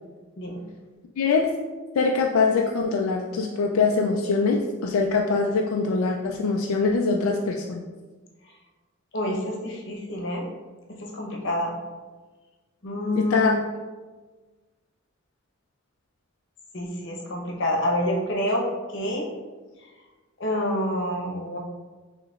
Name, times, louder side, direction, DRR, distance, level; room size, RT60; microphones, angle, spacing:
voice 1, 1.2-1.6 2.0-7.8 13.2-13.6, left 4 dB, 85° left, 1 dB, 0.3 m, -23 dB
voice 2, 9.1-10.4 11.0-11.7 12.8-13.5 16.7-18.6 18.9-19.3 20.4-21.6, left 1 dB, 60° left, -1 dB, 0.9 m, -27 dB
6.1 x 3.0 x 2.4 m, 1.3 s
head